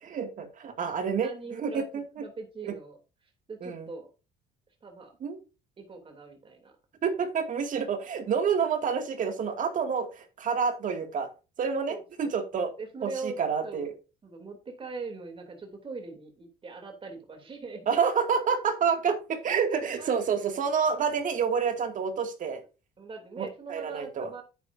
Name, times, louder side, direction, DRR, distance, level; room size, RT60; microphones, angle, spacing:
voice 1, 0.0-2.2 2.6-2.7 3.6-3.9 5.2-5.4 7.0-11.3 11.6-12.7 13.0-13.9 17.9-22.6 23.4-24.3, right 6 dB, 50° right, 6 dB, 2.3 m, -28 dB
voice 2, 1.2-1.8 2.2-4.1 4.8-5.1 5.8-6.7 11.9-12.3 12.8-13.4 13.6-13.9 14.2-17.9 20.0-20.2 23.0-24.4, right 4 dB, 30° right, 4 dB, 3.0 m, -41 dB
9.9 x 9.1 x 2.7 m, 0.31 s
cardioid pair, 110°, 17 cm